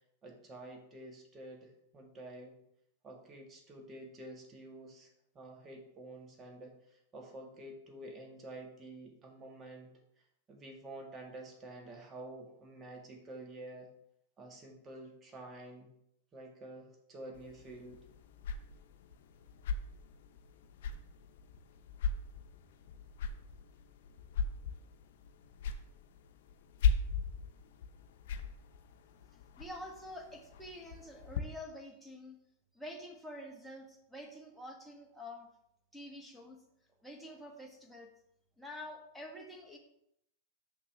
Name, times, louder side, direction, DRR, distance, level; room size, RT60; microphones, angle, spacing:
voice 1, 0.2-2.5 3.0-9.9 10.5-13.9 14.4-15.9 16.3-18.0, right 1 dB, 25° right, 2 dB, 1.8 m, -49 dB
sound 1, 17.3-31.4, left 5 dB, 65° left, 0.7 m, -39 dB
voice 2, 29.6-32.4 32.7-35.5 35.9-36.6 37.0-38.1 38.6-39.8, left 1 dB, ahead, 1 dB, 1.5 m, -47 dB
6.8 x 5.9 x 3.5 m, 0.76 s
hypercardioid pair, 110°, 0 cm